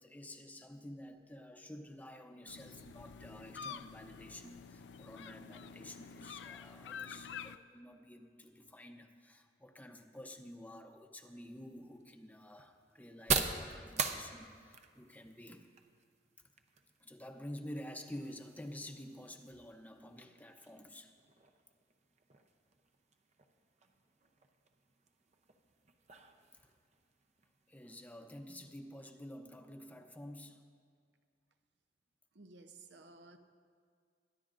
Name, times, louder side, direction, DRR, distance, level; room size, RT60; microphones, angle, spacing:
voice 1, 0.0-15.7 17.0-21.1 26.5-26.7 27.7-30.6, left 1 dB, 10° left, 0.7 m, -50 dB
sound 1, 2.5-7.6, left 6 dB, 80° left, 0.4 m, -48 dB
sound 2, 11.2-28.8, right 5 dB, 40° right, 0.7 m, -44 dB
voice 2, 32.3-33.4, right 3 dB, 75° right, 0.7 m, -55 dB
23.0 x 11.0 x 2.5 m
head